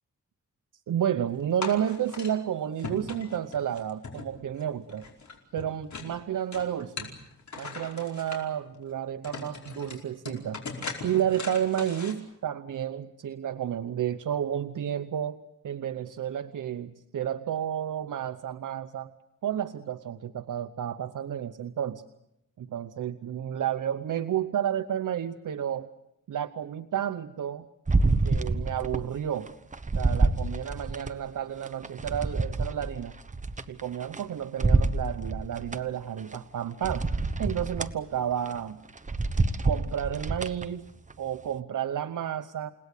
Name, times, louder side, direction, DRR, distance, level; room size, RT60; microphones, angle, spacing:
voice 1, 0.9-5.0 5.5-7.1 7.6-10.6 11.0-15.4 15.6-19.1 19.4-22.0 22.6-25.9 26.3-27.7 28.2-29.5 29.9-33.1 33.7-37.1 37.4-38.8 39.6-40.9 41.2-42.7, right 10 dB, 75° right, 9 dB, 0.9 m, -31 dB
sound 1, 1.6-2.3 2.8-4.6 4.9-6.1 6.5-8.4 8.9-9.0 9.2-12.1, left 4 dB, 60° left, 5.0 m, -39 dB
sound 2, 27.9-29.1 29.5-31.1 31.6-34.2 34.6-35.8 36.3-36.4 36.8-37.9 38.4-38.6 39.0-40.6 41.1-41.2, right 3 dB, 25° right, 1.1 m, -27 dB
29.5 x 18.5 x 8.3 m, 0.86 s
wide cardioid pair, 120°, 32 cm